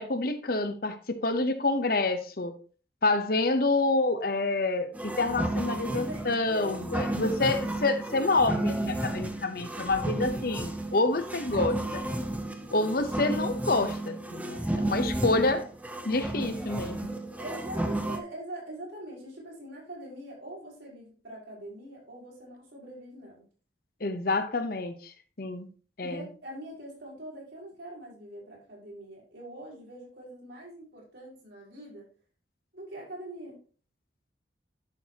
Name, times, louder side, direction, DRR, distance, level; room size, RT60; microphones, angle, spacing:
voice 1, 0.0-2.5 3.0-12.0 12.7-15.6 16.1-17.1 24.0-25.1 25.4-25.7 26.0-26.3, left 2 dB, 55° left, 9 dB, 0.9 m, -28 dB
sound 1, 4.9-18.2, right 1 dB, 10° right, 0.7 m, -32 dB
voice 2, 5.8-6.3 11.5-11.6 15.4-15.6 17.4-23.4 26.0-32.1 32.7-33.6, right 1 dB, 75° right, -4 dB, 5.0 m, -43 dB
11.0 x 6.2 x 2.9 m, 0.39 s
head